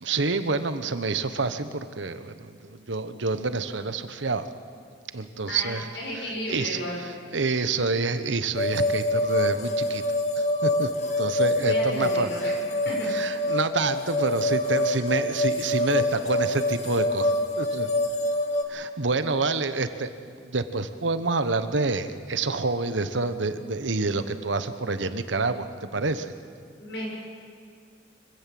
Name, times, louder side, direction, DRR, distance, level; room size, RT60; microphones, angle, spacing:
voice 1, 0.0-4.5 5.1-5.9 6.1-10.0 10.4-10.9 11.2-12.3 13.1-17.9 18.7-26.3, right 3 dB, 85° right, 11 dB, 1.1 m, -28 dB
voice 2, 5.5-7.0 11.6-12.5 12.8-13.1 26.8-27.1, equal, 65° left, -2 dB, 7.1 m, -33 dB
sound 1, 8.6-18.6, left 1 dB, 40° left, 1.9 m, -26 dB
24.5 x 15.5 x 7.7 m, 2.1 s
head